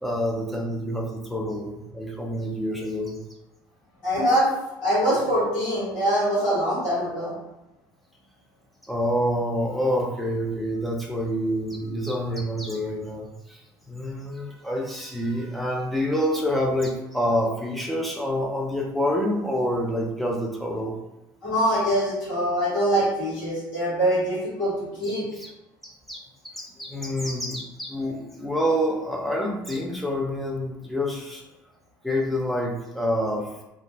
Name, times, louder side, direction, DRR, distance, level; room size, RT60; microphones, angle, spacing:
voice 1, 0.0-3.2 8.9-13.6 13.9-20.9 25.4-25.5 25.8-31.4 32.0-33.5, equal, ahead, -2 dB, 0.7 m, -27 dB
voice 2, 4.0-4.5 4.8-7.3 21.4-25.3, equal, 70° left, -11 dB, 1.2 m, -23 dB
2.5 x 2.0 x 3.2 m, 0.93 s
figure-of-eight pair, 55°, 11 cm